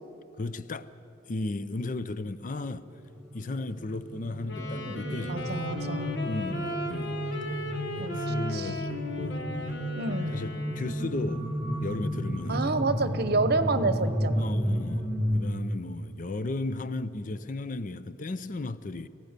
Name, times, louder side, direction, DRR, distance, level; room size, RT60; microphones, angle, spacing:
voice 1, 0.4-0.9 1.3-2.8 3.3-5.6 6.2-7.2 7.5-7.6 8.0-9.8 10.3-11.5 11.8-12.7 14.3-15.1 15.3-19.1, left 2 dB, 45° left, 0.5 m, -35 dB
sound 1, 2.8-15.4, equal, 5° right, 2.5 m, -32 dB
Wind instrument woodwind instrument, 4.4-11.3, left 1 dB, 60° left, 1.7 m, -37 dB
sound 2, 4.6-9.9 10.4-15.4, right 1 dB, 25° right, 2.7 m, -48 dB
voice 2, 5.3-6.2 8.0-8.8 9.9-10.4 12.5-14.4, right 3 dB, 55° right, 0.9 m, -29 dB
29.0 x 15.0 x 6.7 m
head